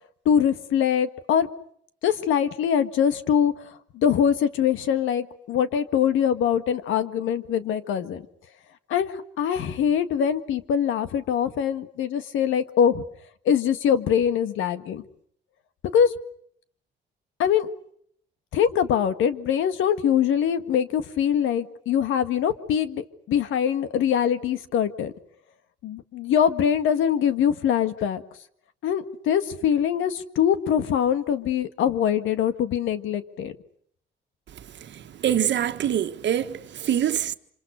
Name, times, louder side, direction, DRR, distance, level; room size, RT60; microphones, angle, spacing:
voice 1, 0.3-1.5 2.0-3.5 3.9-8.2 8.9-13.0 13.5-15.0 15.9-16.1 17.4-17.7 18.5-25.1 25.8-28.2 28.8-33.5, left 8 dB, 85° left, 1.8 m, -23 dB
voice 2, 34.9-37.3, right 10 dB, 65° right, 1.5 m, -25 dB
27.5 x 26.5 x 6.4 m
cardioid pair, 90°, 20 cm